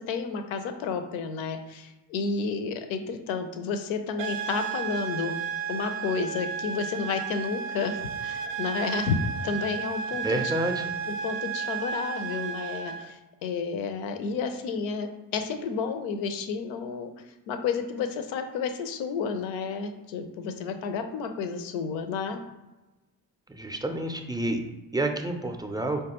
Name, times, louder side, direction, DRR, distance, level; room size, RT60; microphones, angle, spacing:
voice 1, 0.0-5.4 5.7-9.2 9.4-10.5 11.1-17.1 17.5-22.4, left 5 dB, 70° left, 7 dB, 0.6 m, -31 dB
sound 1, 4.2-13.1, right 7 dB, 65° right, 0.5 m, -33 dB
voice 2, 10.2-10.8 23.5-24.6 24.9-26.0, right 1 dB, 10° right, 4 dB, 0.4 m, -29 dB
4.6 x 2.3 x 2.9 m, 1.1 s
hypercardioid pair, 40°, 48 cm